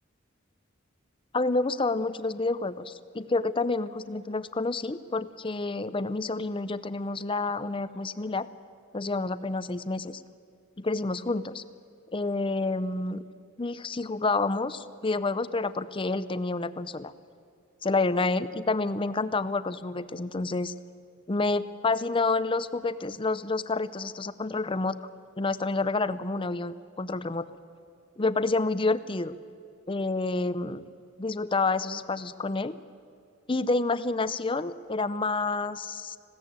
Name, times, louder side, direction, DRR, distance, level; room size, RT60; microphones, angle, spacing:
voice 1, 1.3-8.5 8.9-10.2 10.8-11.6 12.1-13.2 13.6-17.1 17.8-20.7 21.3-25.0 25.4-27.5 28.2-29.3 29.9-30.9 31.2-32.8 33.5-36.2, left 3 dB, 25° left, 14 dB, 0.6 m, -29 dB
20.0 x 16.5 x 8.9 m, 2.5 s
head